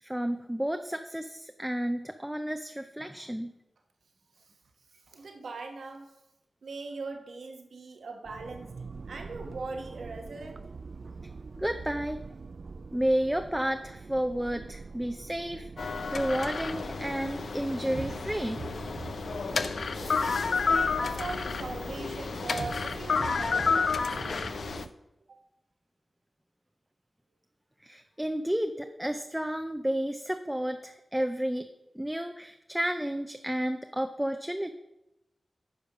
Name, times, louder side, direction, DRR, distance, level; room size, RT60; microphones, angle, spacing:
voice 1, 0.0-3.5 11.6-12.2 12.9-18.6 27.8-31.7 31.9-34.7, right 1 dB, 5° right, 7 dB, 0.5 m, -31 dB
voice 2, 4.9-6.1 6.6-8.7 9.1-10.6 19.8-24.7 25.3-25.4, right 3 dB, 90° right, 4 dB, 1.3 m, -41 dB
sound 1, 8.3-24.9, right 4 dB, 65° right, 0.3 m, -43 dB
sound 2, 15.8-24.9, left 5 dB, 80° left, 0.5 m, -30 dB
9.8 x 5.1 x 6.1 m, 0.93 s
wide cardioid pair, 70°, 0 cm